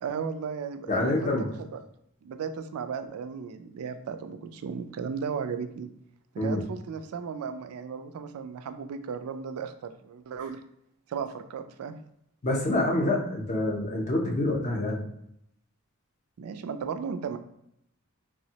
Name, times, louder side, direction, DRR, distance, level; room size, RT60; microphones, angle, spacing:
voice 1, 0.0-1.3 1.7-1.8 2.2-5.9 6.3-10.6 11.1-12.0 16.4-17.4, right 6 dB, 85° right, 9 dB, 0.3 m, -35 dB
voice 2, 0.9-1.5 6.4-6.6 12.4-15.0, left 1 dB, 35° left, 0 dB, 0.5 m, -26 dB
3.4 x 2.0 x 2.7 m, 0.75 s
head